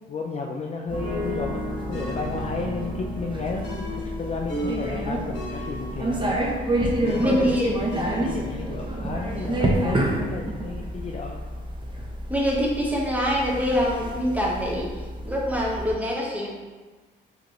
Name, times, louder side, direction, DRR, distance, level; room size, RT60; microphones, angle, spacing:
voice 1, 0.1-3.7 3.9-11.5, left 4 dB, 35° left, 0 dB, 0.4 m, -33 dB
sound 1, 0.9-15.9, right 1 dB, 25° right, 0.7 m, -29 dB
sound 2, 0.9-10.9, equal, 70° right, 1.2 m, -38 dB
sound 3, 1.9-8.8, left 1 dB, 60° left, 1.2 m, -37 dB
voice 2, 7.2-7.8 12.3-16.5, equal, 5° right, -3 dB, 1.0 m, -25 dB
5.0 x 3.0 x 2.9 m, 1.3 s
cardioid pair, 90°, 20 cm